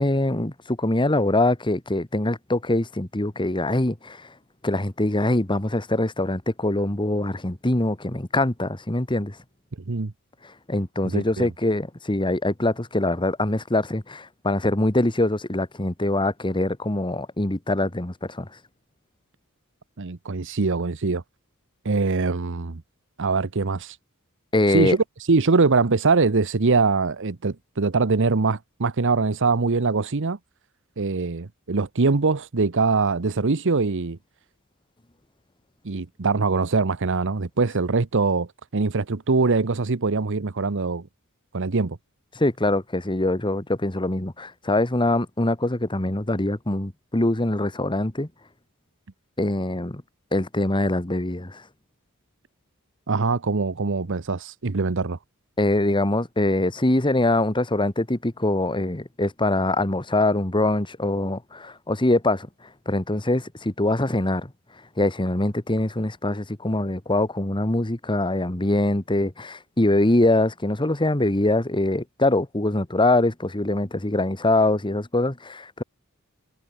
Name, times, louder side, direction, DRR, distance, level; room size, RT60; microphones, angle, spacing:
voice 1, 0.0-4.3 4.6-9.3 10.7-18.5 24.5-25.0 42.3-48.3 49.4-50.0 50.3-51.6 55.6-62.5 62.8-64.5 65.0-75.8, left 2 dB, 20° left, 1.7 m, -23 dB
voice 2, 11.0-11.5 20.0-21.2 21.8-22.8 23.2-24.0 24.7-30.4 31.0-34.2 35.8-41.1 41.5-42.0 53.1-55.2, right 4 dB, 60° right, 0.9 m, -23 dB
head